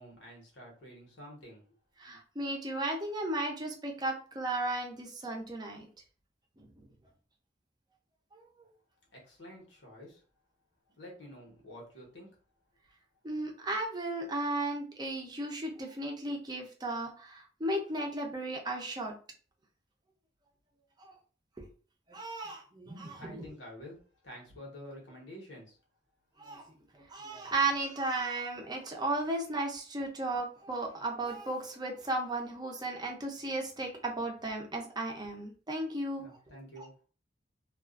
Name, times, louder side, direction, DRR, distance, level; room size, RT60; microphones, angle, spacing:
voice 1, 0.0-1.6 9.1-10.2 10.9-12.3 23.2-25.8 36.2-36.9, equal, 85° left, -1 dB, 1.1 m, -49 dB
voice 2, 2.0-5.9 6.6-6.9 8.3-8.4 13.2-19.1 21.0-21.1 22.1-23.5 26.4-26.6 26.9-36.4 36.8-36.9, right 2 dB, 25° right, 1 dB, 0.5 m, -35 dB
2.3 x 2.3 x 2.4 m, 0.39 s
head